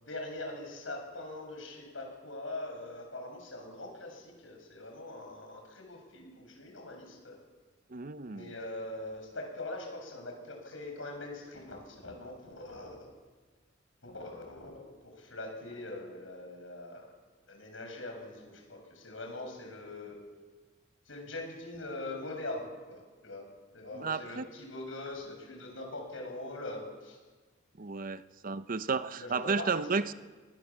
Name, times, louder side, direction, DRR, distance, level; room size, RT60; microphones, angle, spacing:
voice 1, 0.0-7.4 8.3-13.1 14.0-17.1 17.5-20.2 21.1-23.5 23.7-27.2 29.2-30.2, left 2 dB, 90° left, 2 dB, 7.6 m, -42 dB
voice 2, 7.9-8.5 23.9-24.5 27.8-30.1, right 4 dB, 45° right, 13 dB, 0.8 m, -33 dB
25.5 x 20.5 x 7.5 m, 1.4 s
head